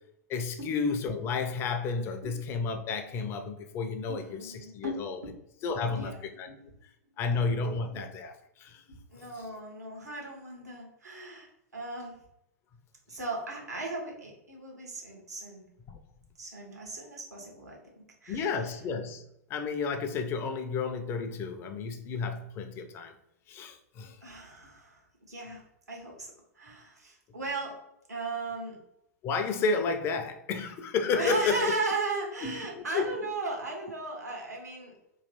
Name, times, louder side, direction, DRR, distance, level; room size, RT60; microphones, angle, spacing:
voice 1, 0.3-5.2 5.6-6.1 6.4-6.5 7.2-8.8 9.4-9.5 15.9-16.0 18.3-19.2 19.5-23.1 23.5-24.2 29.2-31.8 32.4-33.1, left 4 dB, 30° left, 7 dB, 0.5 m, -31 dB
voice 2, 4.1-5.4 5.8-6.7 7.6-8.0 8.9-11.5 11.7-12.2 13.1-15.6 16.4-18.6 24.2-25.6 25.9-27.8 28.1-28.8 31.2-34.9, right 2 dB, 80° right, 0 dB, 1.2 m, -37 dB
3.1 x 3.0 x 4.1 m, 0.79 s
figure-of-eight pair, 100°, 9 cm